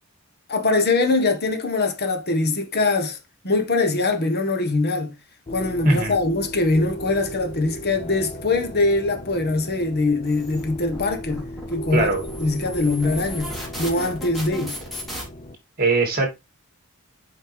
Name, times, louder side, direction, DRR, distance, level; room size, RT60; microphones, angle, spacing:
voice 1, 0.5-3.2 3.4-5.1 5.5-11.4 11.7-12.1 12.4-13.5 13.8-14.8, left 3 dB, 45° left, 1.5 m, -22 dB
sound 1, 5.5-15.6, equal, 30° left, 0.6 m, -37 dB
sound 2, 10.2-15.2, equal, ahead, 4.0 m, -36 dB
voice 2, 11.9-12.2 15.8-16.3, right 3 dB, 40° right, 3.0 m, -20 dB
8.0 x 5.6 x 3.5 m
head